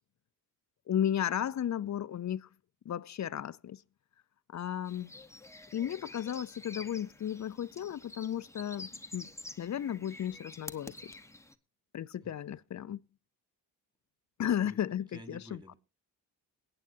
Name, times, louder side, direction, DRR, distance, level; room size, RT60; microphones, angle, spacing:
voice 1, 0.9-2.5 2.9-3.8 4.5-5.1 5.7-9.3 9.6-11.1 11.9-13.0 14.4-15.4, left 10 dB, 40° left, 0.5 m, -34 dB
sound 1, 4.9-11.6, left 2 dB, 5° left, 1.0 m, -48 dB
voice 2, 12.2-12.6 14.6-14.8 15.1-15.7, equal, 10° right, 3.3 m, -51 dB
22.0 x 8.8 x 2.7 m
supercardioid pair, 55°, 43 cm